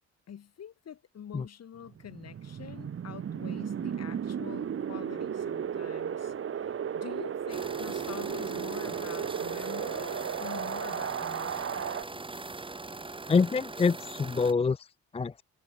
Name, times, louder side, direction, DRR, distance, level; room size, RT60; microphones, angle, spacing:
voice 1, 0.3-11.8, left 9 dB, 55° left, 4.2 m, -46 dB
Wind, 1.8-12.0, right 8 dB, 45° right, 1.4 m, -35 dB
sound 1, 7.5-14.5, right 3 dB, 15° right, 2.6 m, -41 dB
voice 2, 13.3-15.4, left 5 dB, 20° left, 0.5 m, -26 dB
cardioid pair, 90°, 30 cm